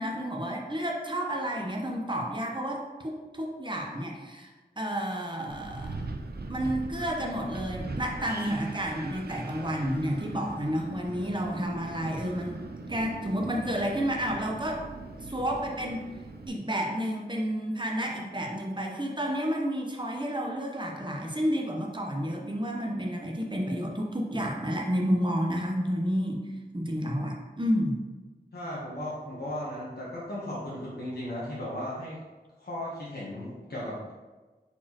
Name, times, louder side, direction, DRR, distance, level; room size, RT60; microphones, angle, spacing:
voice 1, 0.0-4.5 4.8-5.9 6.5-12.6 12.9-14.8 15.3-16.0 16.5-26.4 26.7-28.0, equal, 25° right, 0 dB, 0.8 m, -30 dB
Wind, 5.5-16.5, right 3 dB, 65° right, 0.5 m, -40 dB
voice 2, 28.5-32.2 32.6-34.1, left 1 dB, 70° left, -7 dB, 1.0 m, -36 dB
4.4 x 4.1 x 3.0 m, 1.3 s
wide cardioid pair, 45°, 17 cm